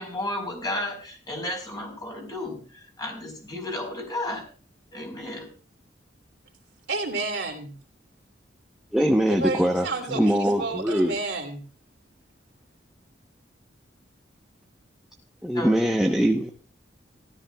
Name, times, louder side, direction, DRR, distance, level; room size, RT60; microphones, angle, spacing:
voice 1, 0.0-4.5 4.9-5.5 15.5-15.7 16.0-16.2, left 1 dB, 20° left, 2 dB, 4.4 m, -33 dB
voice 2, 6.9-7.7 9.4-10.2 10.6-11.6, right 3 dB, 75° right, 3 dB, 3.0 m, -30 dB
voice 3, 8.9-11.2 15.4-16.5, equal, 5° right, 2 dB, 0.9 m, -22 dB
16.5 x 13.0 x 2.3 m, 0.37 s
head